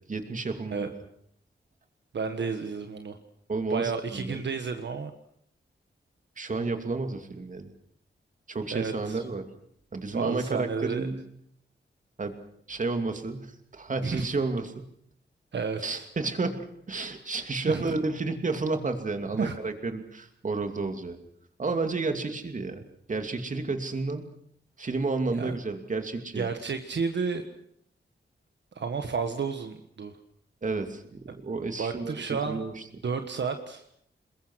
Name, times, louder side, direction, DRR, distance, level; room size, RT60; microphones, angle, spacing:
voice 1, 0.1-0.9 3.5-4.4 6.4-7.7 8.5-9.4 9.9-11.2 12.2-12.4 12.7-14.8 15.8-21.2 21.6-24.2 24.8-26.5 30.6-32.8, right 3 dB, 40° right, 6 dB, 2.8 m, -31 dB
voice 2, 2.1-3.2 3.7-5.1 8.7-9.2 10.1-11.1 14.0-14.3 15.5-16.0 17.7-17.9 19.4-19.5 25.4-25.6 26.3-27.4 28.8-30.1 31.8-32.6 33.0-33.8, right 5 dB, 65° right, 7 dB, 1.5 m, -31 dB
28.0 x 21.5 x 6.4 m, 0.69 s
wide cardioid pair, 145°, 20 cm